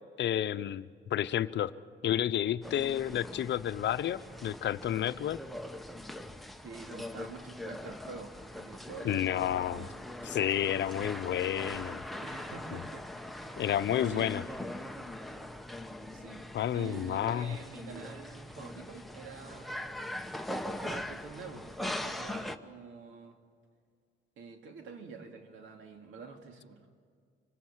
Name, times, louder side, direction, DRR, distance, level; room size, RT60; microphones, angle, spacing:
voice 1, 0.2-1.7 2.0-5.4 9.0-9.9 10.3-12.0 12.7-12.8 13.6-14.4 16.5-17.6, left 11 dB, 65° left, 13 dB, 0.8 m, -31 dB
sound 1, 2.6-22.6, left 1 dB, ahead, 1.0 m, -42 dB
voice 2, 6.6-9.9 10.9-11.1 12.2-13.7 14.1-14.4 16.1-16.4 16.7-20.0 20.8-23.4 24.4-27.0, right 5 dB, 85° right, 4 dB, 2.5 m, -47 dB
26.0 x 17.0 x 7.4 m, 2.1 s
cardioid pair, 90°, 20 cm